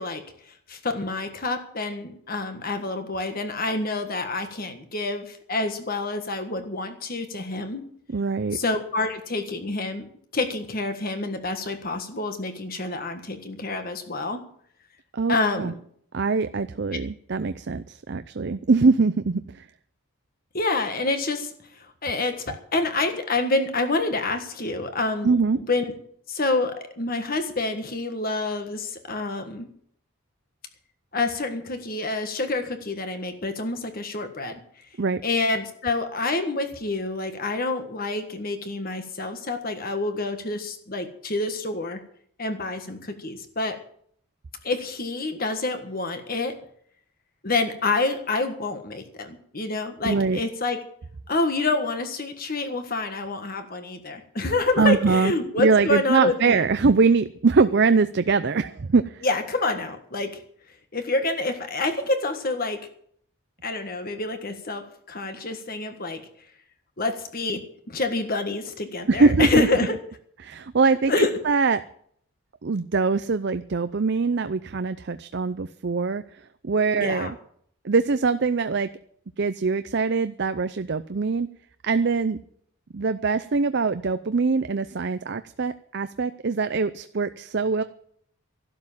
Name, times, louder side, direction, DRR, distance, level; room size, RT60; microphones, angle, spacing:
voice 1, 0.0-7.8 8.5-10.1 10.3-14.4 15.3-15.7 20.5-25.9 26.3-29.7 31.1-34.6 35.2-42.0 42.4-43.8 44.6-46.6 47.4-50.8 51.3-56.7 59.2-60.4 60.9-62.9 63.6-66.2 67.0-70.0 71.1-71.4 77.0-77.3, left 2 dB, 40° left, 7 dB, 1.5 m, -27 dB
voice 2, 8.1-8.6 15.1-15.7 16.1-19.7 25.2-25.6 35.0-35.2 50.0-50.4 54.8-55.3 55.6-59.2 69.1-69.7 70.4-71.8 72.6-76.2 76.6-77.3 77.8-78.9 79.4-81.5 81.8-82.4 82.9-87.8, right 4 dB, 50° right, 11 dB, 0.5 m, -23 dB
13.0 x 12.0 x 7.4 m, 0.64 s
head